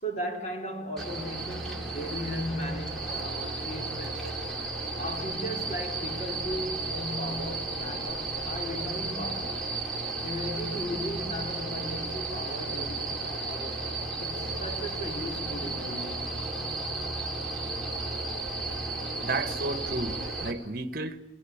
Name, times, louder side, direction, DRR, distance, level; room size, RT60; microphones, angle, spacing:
voice 1, 0.0-4.5 5.0-9.7 10.2-16.4, equal, 40° left, 4.3 m, -37 dB
sound 1, 1.0-20.5, right 3 dB, ahead, 3.9 m, -34 dB
voice 2, 19.2-21.2, right 2 dB, 50° right, 1.4 m, -32 dB
28.5 x 21.5 x 8.8 m
head